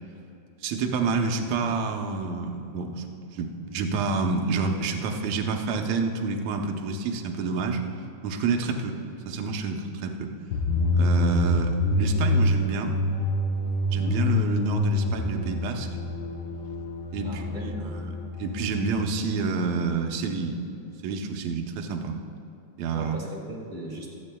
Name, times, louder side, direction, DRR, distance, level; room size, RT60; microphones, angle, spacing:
voice 1, 0.6-3.0 3.3-7.8 8.2-8.9 9.3-10.3 11.0-13.0 13.9-15.9 17.1-17.7 18.0-20.6 21.0-22.2 22.8-23.2, right 4 dB, 70° right, 3 dB, 2.0 m, -28 dB
sound 1, 10.5-19.3, left 1 dB, 65° left, 1.3 m, -26 dB
voice 2, 17.2-18.0 22.9-24.1, right 1 dB, 25° right, -2 dB, 1.1 m, -39 dB
25.0 x 9.3 x 2.3 m, 2.8 s
omnidirectional pair, 3.5 m